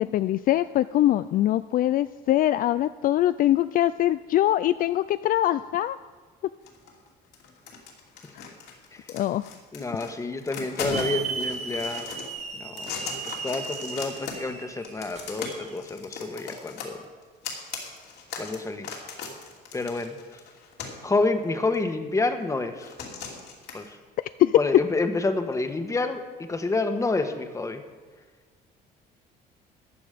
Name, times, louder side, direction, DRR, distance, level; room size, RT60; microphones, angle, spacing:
voice 1, 0.0-6.0 8.4-8.5 9.1-9.5 24.2-24.6, left 13 dB, 55° left, 14 dB, 0.4 m, -23 dB
sound 1, 6.7-7.1 7.3-10.1 10.4-12.3 12.7-14.5 14.8-21.1 21.7-21.8 22.8-23.9, left 5 dB, 75° left, 2.8 m, -37 dB
voice 2, 9.7-12.1 12.6-13.0 13.2-17.0 18.4-18.9 19.7-20.2 21.0-22.9 23.7-24.0 24.5-27.8, left 3 dB, 20° left, 7 dB, 1.3 m, -28 dB
Hiss / Alarm, 10.9-15.7, right 5 dB, 40° right, 1.7 m, -36 dB
14.5 x 9.3 x 5.1 m, 1.5 s
cardioid pair, 110°, 17 cm